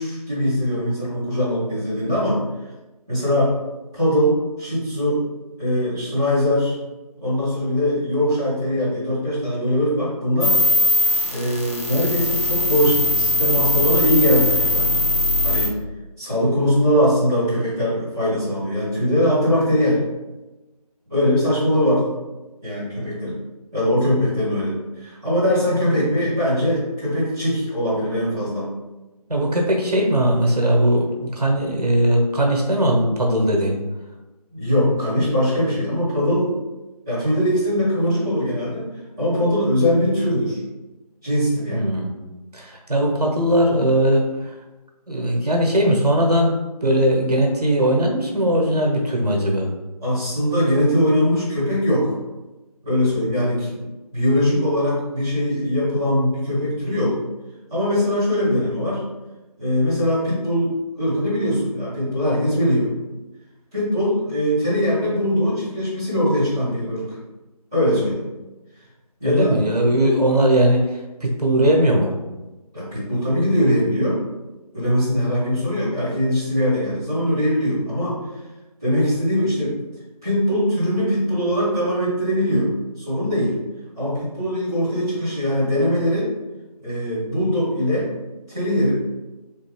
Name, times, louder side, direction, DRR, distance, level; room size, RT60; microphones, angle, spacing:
voice 1, 0.0-2.4 3.1-3.5 3.9-5.2 5.6-6.7 7.2-10.6 11.3-14.9 15.4-15.7 16.2-20.0 21.1-22.0 22.6-23.4 23.7-28.7 34.5-36.5 37.1-38.9 39.2-40.6 41.2-41.8 50.0-52.1 52.8-57.1 57.7-59.0 59.6-60.7 61.0-62.9 63.7-67.2 67.7-68.2 69.2-69.5 72.7-74.2 74.7-78.2 78.8-79.8 80.2-82.7 83.0-83.5 84.0-86.3 86.8-88.1 88.5-89.0, equal, 5° right, -17 dB, 0.7 m, -21 dB
sound 1, 10.4-15.7, left 1 dB, 45° left, 0.8 m, -20 dB
voice 2, 29.3-33.8 41.7-42.1 42.5-44.5 45.1-49.7 69.2-72.1, equal, 75° right, 0 dB, 1.0 m, -19 dB
3.3 x 2.7 x 3.0 m, 1.1 s
figure-of-eight pair, 165°, 20 cm